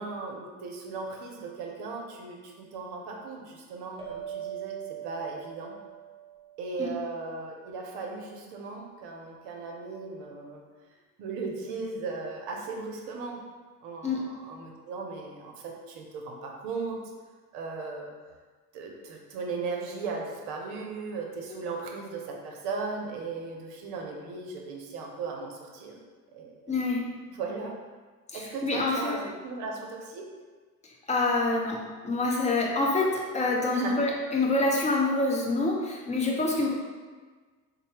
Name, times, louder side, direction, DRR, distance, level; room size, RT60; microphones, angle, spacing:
voice 1, 0.0-5.7 6.6-10.6 11.2-13.4 13.8-17.0 17.5-18.1 18.7-26.0 26.3-26.7 27.3-27.7 28.3-30.3 33.7-34.0, right 4 dB, 55° right, 1 dB, 0.8 m, -37 dB
sound 1, 4.0-7.0, right 10 dB, 10° right, 0.9 m, -41 dB
voice 2, 26.7-27.1 28.3-29.2 30.8-36.7, left 2 dB, 15° left, -2 dB, 0.7 m, -27 dB
4.0 x 2.2 x 3.3 m, 1.4 s
hypercardioid pair, 70°, 47 cm